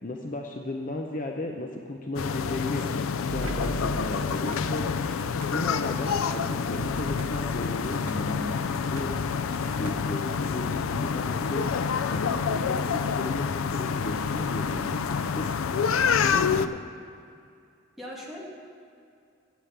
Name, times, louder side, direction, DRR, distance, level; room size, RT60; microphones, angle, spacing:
voice 1, 0.0-4.9 5.3-8.4 8.7-9.4 9.8-15.5 16.1-16.8, left 2 dB, 40° left, 2 dB, 0.7 m, -35 dB
sound 1, 2.2-16.7, left 6 dB, 80° left, 0.4 m, -28 dB
sound 2, 3.3-10.1, right 3 dB, 90° right, 0.5 m, -41 dB
sound 3, 3.4-5.6 6.1-6.2, right 2 dB, 70° right, 1.0 m, -47 dB
voice 2, 8.0-8.6 18.0-18.4, equal, ahead, -5 dB, 1.9 m, -37 dB
9.2 x 8.3 x 8.2 m, 2.4 s
head